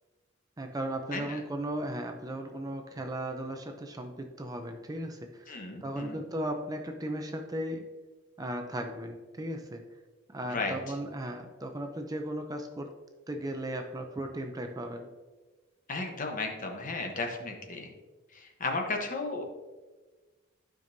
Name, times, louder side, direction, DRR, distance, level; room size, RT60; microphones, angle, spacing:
voice 1, 0.6-5.6 5.8-7.9 8.4-9.8 10.3-12.9 13.3-15.1, right 1 dB, 20° right, 5 dB, 0.5 m, -36 dB
voice 2, 5.5-6.2 10.4-10.8 15.9-17.9 18.3-19.4, left 3 dB, 40° left, 3 dB, 1.0 m, -34 dB
12.0 x 5.2 x 2.7 m, 1.3 s
head